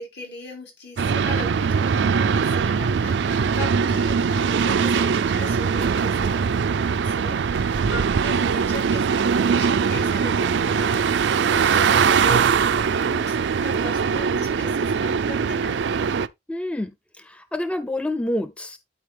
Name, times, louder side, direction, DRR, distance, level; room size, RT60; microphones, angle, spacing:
voice 1, 0.0-6.4 7.0-16.0, left 2 dB, 70° left, 4.6 m, -38 dB
sound 1, 1.0-16.3, right 6 dB, 90° right, 0.4 m, -21 dB
voice 2, 16.5-16.9 17.2-18.8, left 1 dB, 5° left, 0.4 m, -27 dB
11.5 x 4.4 x 3.3 m
head